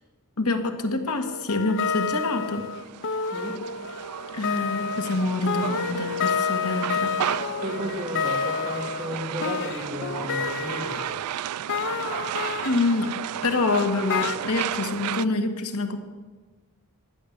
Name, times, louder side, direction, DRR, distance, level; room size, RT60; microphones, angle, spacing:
voice 1, 0.4-2.7 4.3-7.1 12.6-13.1 13.4-16.0, left 2 dB, 80° left, 6 dB, 1.7 m, -26 dB
sound 1, 1.2-11.2 11.7-13.1 14.1-14.4, left 6 dB, 55° left, 0.6 m, -29 dB
sound 2, 1.8-15.2, right 10 dB, 85° right, 0.4 m, -34 dB
voice 2, 7.6-11.2, equal, 25° right, -1 dB, 3.2 m, -33 dB
15.0 x 11.5 x 8.0 m, 1.3 s
head